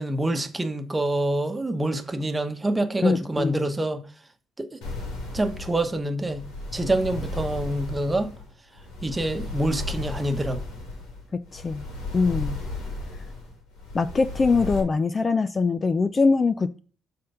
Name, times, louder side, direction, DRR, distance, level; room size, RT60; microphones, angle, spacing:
voice 1, 0.0-4.0 4.6-4.8 5.3-6.5 6.7-8.3 9.0-10.6, right 1 dB, 20° right, 1.1 m, -26 dB
voice 2, 3.0-3.7 11.3-11.9 12.1-12.6 13.9-16.8, left 4 dB, 30° left, 0.4 m, -23 dB
sound 1, 4.8-14.8, left 2 dB, 90° left, 2.2 m, -35 dB
7.6 x 3.8 x 5.5 m
cardioid pair, 90°, 0 cm